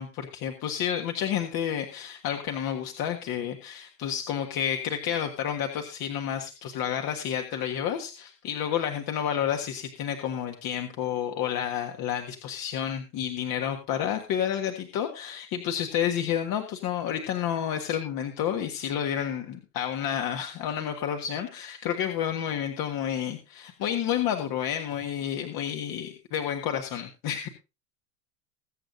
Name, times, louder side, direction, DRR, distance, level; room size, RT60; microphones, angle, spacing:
voice 1, 0.0-27.5, left 9 dB, 45° left, 5 dB, 1.6 m, -30 dB
21.5 x 7.9 x 2.6 m, 0.28 s
supercardioid pair, 125°, 49 cm